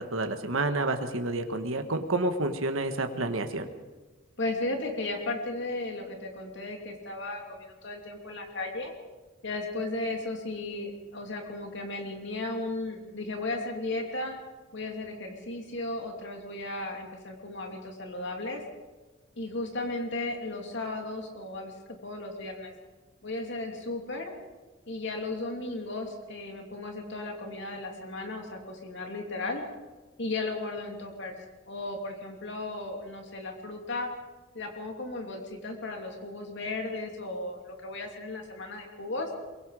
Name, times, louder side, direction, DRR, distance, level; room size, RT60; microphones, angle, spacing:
voice 1, 0.0-3.7, right 2 dB, 90° right, 6 dB, 1.6 m, -29 dB
voice 2, 4.4-8.9 9.4-14.4 14.7-18.6 19.4-21.7 22.0-22.7 23.2-24.3 24.9-29.6 30.2-31.4 31.7-34.1 34.5-39.3, left 2 dB, 60° left, 2 dB, 2.9 m, -35 dB
23.0 x 22.5 x 5.0 m, 1.3 s
head